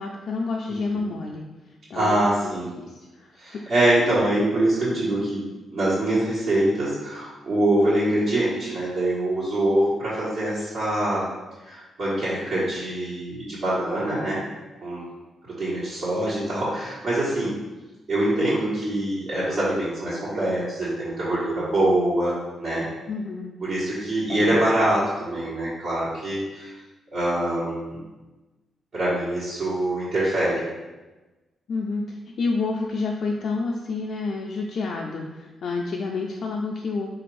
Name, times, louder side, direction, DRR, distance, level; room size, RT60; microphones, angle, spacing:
voice 1, 0.0-1.4 1.9-3.6 23.1-23.6 24.3-24.6 31.7-37.1, left 3 dB, 60° left, 0 dB, 0.4 m, -29 dB
voice 2, 1.9-2.7 3.4-5.4 5.7-11.3 11.6-14.5 14.8-15.0 15.5-17.6 18.1-22.8 23.6-26.7 27.1-28.0 28.9-30.6, right 1 dB, 55° right, -11 dB, 1.3 m, -24 dB
3.9 x 2.5 x 4.6 m, 1.1 s
cardioid pair, 115°, 0 cm